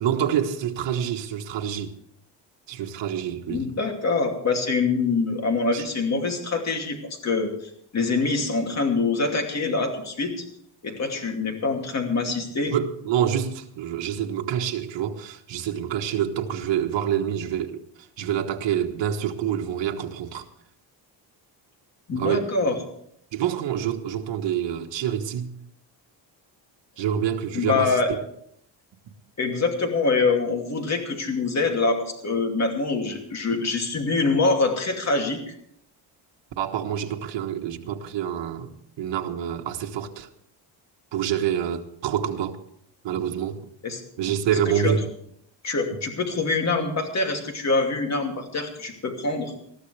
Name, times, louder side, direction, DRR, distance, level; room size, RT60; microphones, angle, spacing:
voice 1, 0.0-1.9 2.7-3.7 5.7-5.9 12.7-17.8 18.2-20.4 22.1-22.5 23.3-25.5 27.0-28.2 36.6-38.7 39.0-40.3 41.1-42.6 43.0-43.6 44.2-45.1, right 9 dB, 80° right, 1.4 m, -27 dB
voice 2, 3.5-10.4 10.8-12.7 22.1-22.7 27.5-28.1 29.4-35.5 43.8-44.0 44.8-44.9 45.6-49.5, left 3 dB, 35° left, 2.7 m, -25 dB
20.5 x 14.0 x 3.4 m
cardioid pair, 140°, 44 cm